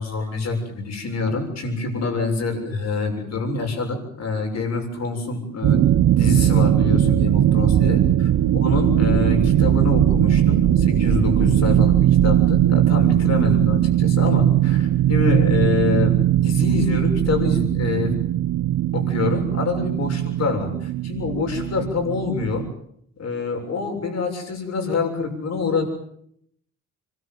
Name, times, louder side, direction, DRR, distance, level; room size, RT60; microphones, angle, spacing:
voice 1, 0.0-5.8 6.2-8.0 8.6-11.9 12.2-16.2 16.4-18.2 18.9-22.7 23.2-25.9, left 4 dB, 60° left, 4 dB, 7.1 m, -25 dB
sound 1, 5.6-22.7, right 12 dB, 70° right, 1.2 m, -19 dB
26.0 x 22.5 x 8.0 m, 0.70 s
cardioid pair, 90°, 30 cm